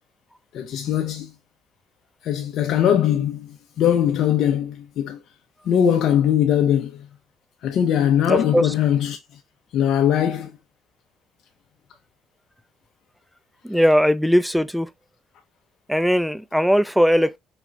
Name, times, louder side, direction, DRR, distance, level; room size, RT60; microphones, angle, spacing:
voice 1, 0.5-1.3 2.2-5.2 5.7-7.1 7.6-9.2 9.7-10.6, left 9 dB, 65° left, 0.7 m, -21 dB
voice 2, 8.3-8.7 13.6-14.9 15.9-17.4, equal, ahead, 0.5 m, -19 dB
5.0 x 2.4 x 3.1 m
hypercardioid pair, 50°, 0 cm